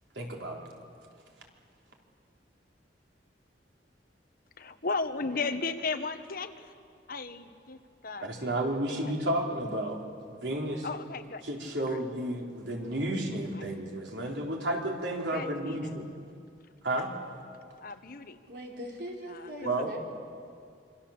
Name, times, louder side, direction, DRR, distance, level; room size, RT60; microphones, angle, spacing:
voice 1, 0.2-0.7 8.2-10.0 10.3-10.9 11.4-16.1 16.8-17.1 19.6-20.0, right 1 dB, 90° right, 0 dB, 3.7 m, -32 dB
voice 2, 4.6-6.8 7.1-9.1 10.8-11.4 11.9-12.0 13.5-13.6 15.2-15.9 17.8-18.4 19.3-19.8, left 4 dB, 55° left, 9 dB, 1.2 m, -36 dB
voice 3, 18.5-20.0, equal, 65° right, -1 dB, 4.2 m, -41 dB
26.5 x 25.5 x 7.2 m, 2.3 s
head